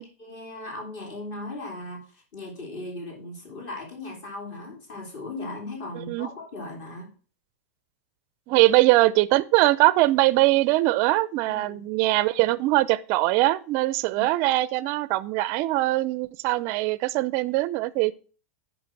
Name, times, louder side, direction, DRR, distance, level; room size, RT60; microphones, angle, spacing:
voice 1, 0.0-7.1 11.5-11.8 14.1-14.2, left 2 dB, 40° left, 2.9 m, -38 dB
voice 2, 8.5-18.1, right 18 dB, 35° right, 0.5 m, -22 dB
8.5 x 5.1 x 6.1 m
supercardioid pair, 165°, 8 cm